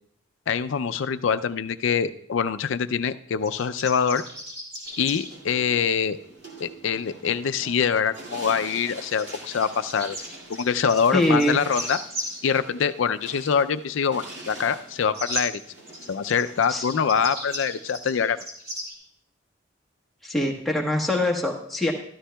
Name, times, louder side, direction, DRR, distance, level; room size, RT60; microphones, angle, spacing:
voice 1, 0.5-4.2 5.0-6.2 6.6-10.2 10.5-12.0 12.4-15.6 16.1-18.4, left 6 dB, 75° left, 12 dB, 0.4 m, -24 dB
sound 1, 3.4-5.3 8.6-8.8 9.1-12.4 15.1-15.4 15.9-18.9, equal, 30° right, 2.7 m, -36 dB
sound 2, 4.8-17.8, right 2 dB, 60° right, 2.3 m, -45 dB
voice 2, 11.1-11.6 16.7-16.9 20.2-21.9, left 1 dB, ahead, -2 dB, 1.2 m, -23 dB
13.5 x 13.0 x 2.3 m, 0.67 s
head